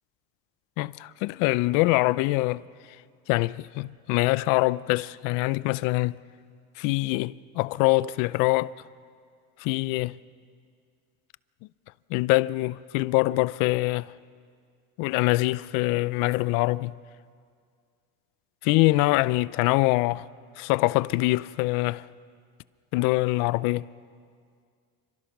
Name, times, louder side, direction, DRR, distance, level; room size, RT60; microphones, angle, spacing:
voice 1, 0.8-2.6 3.3-6.2 6.8-8.7 9.6-10.1 12.1-14.1 15.0-16.9 18.6-20.3 20.6-22.0 22.9-23.9, left 21 dB, 75° left, 0.7 m, -24 dB
29.0 x 25.5 x 6.0 m
cardioid pair, 120°, 33 cm